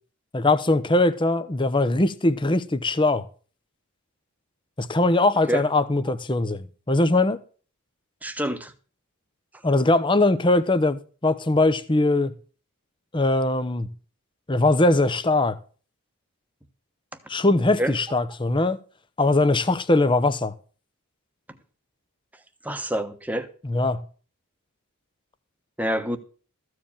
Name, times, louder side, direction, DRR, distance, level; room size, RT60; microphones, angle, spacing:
voice 1, 0.3-3.2 4.8-7.4 9.6-12.3 13.1-13.9 14.5-15.6 17.3-18.8 19.2-20.5 23.6-24.0, left 2 dB, 20° left, 0.8 m, -21 dB
voice 2, 8.2-8.7 17.8-17.9 22.6-23.5 25.8-26.2, equal, 5° right, 1.1 m, -27 dB
14.5 x 4.8 x 8.8 m
head